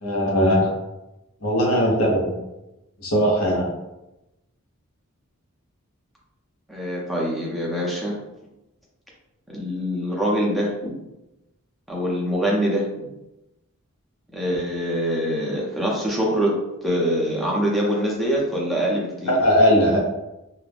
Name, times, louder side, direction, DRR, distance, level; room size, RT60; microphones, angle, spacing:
voice 1, 0.0-0.7 1.4-2.3 3.0-3.7 19.2-20.0, equal, 80° left, -2 dB, 0.8 m, -19 dB
voice 2, 6.7-8.2 9.5-10.9 11.9-13.1 14.3-16.5 16.8-19.3, equal, ahead, -4 dB, 0.5 m, -24 dB
2.4 x 2.0 x 3.2 m, 0.94 s
head